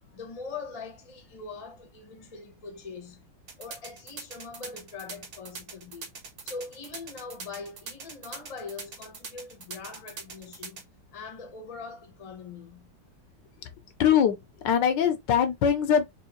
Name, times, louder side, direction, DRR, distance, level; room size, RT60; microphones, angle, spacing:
voice 1, 0.1-3.2 3.6-6.1 6.4-10.9 11.1-12.9, left 4 dB, 25° left, 0.8 m, -42 dB
sound 1, 3.5-10.8, right 5 dB, 60° right, 1.4 m, -41 dB
voice 2, 14.0-16.2, left 8 dB, 75° left, 1.3 m, -23 dB
3.5 x 3.1 x 3.0 m
omnidirectional pair, 2.0 m